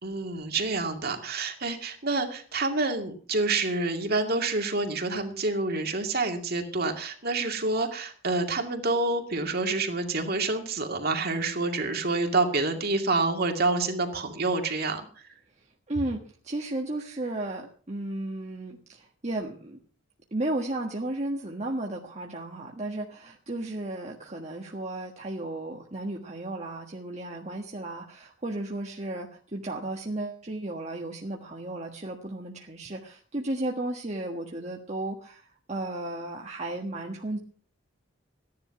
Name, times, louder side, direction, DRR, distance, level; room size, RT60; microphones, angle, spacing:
voice 1, 0.0-15.0, right 3 dB, 50° right, 5 dB, 2.3 m, -28 dB
voice 2, 15.6-19.8 20.3-37.4, right 2 dB, 35° right, 0 dB, 1.5 m, -34 dB
15.5 x 10.5 x 5.9 m, 0.44 s
head